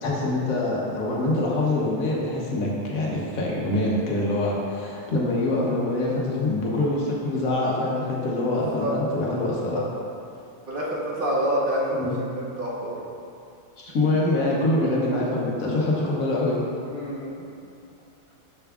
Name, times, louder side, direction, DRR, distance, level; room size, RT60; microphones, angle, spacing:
voice 1, 0.0-9.8 12.0-12.2 13.8-16.6, left 2 dB, 80° left, -4 dB, 1.5 m, -25 dB
voice 2, 8.5-8.9 9.7-9.8 10.7-12.1 12.6-13.0 16.9-17.5, right 1 dB, 40° right, -6 dB, 1.2 m, -27 dB
7.0 x 6.8 x 2.4 m, 2.5 s
omnidirectional pair, 1.4 m